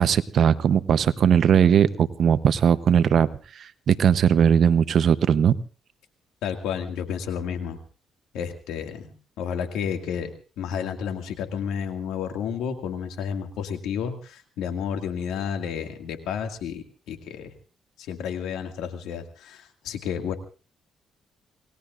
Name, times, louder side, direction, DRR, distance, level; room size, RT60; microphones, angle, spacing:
voice 1, 0.0-3.3 3.6-5.6, right 8 dB, 60° right, 13 dB, 0.8 m, -19 dB
voice 2, 6.4-7.8 8.3-17.5 18.0-20.4, left 7 dB, 90° left, 5 dB, 2.1 m, -31 dB
27.5 x 19.0 x 2.5 m, 0.37 s
cardioid pair, 90°, 0 cm